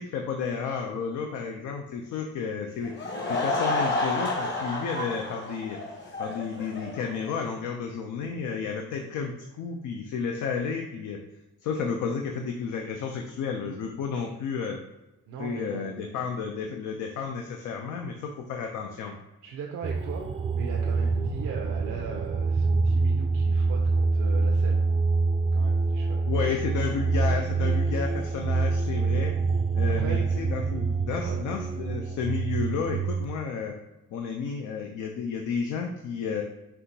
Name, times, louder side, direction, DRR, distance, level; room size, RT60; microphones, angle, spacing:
voice 1, 0.0-2.9 3.3-5.8 6.2-11.2 11.6-14.8 15.4-19.1 26.3-29.3 29.7-33.8 34.1-36.4, left 5 dB, 80° left, 3 dB, 0.5 m, -32 dB
Laughter / Crowd, 2.8-7.4, left 2 dB, 35° left, 1.0 m, -30 dB
voice 2, 15.3-15.9 19.4-24.9 25.5-26.3 29.9-30.2 31.2-31.4, right 5 dB, 85° right, 0 dB, 0.6 m, -39 dB
sound 1, 19.8-33.2, right 4 dB, 20° right, 0.4 m, -26 dB
5.5 x 2.9 x 2.8 m, 1.0 s
cardioid pair, 90°, 30 cm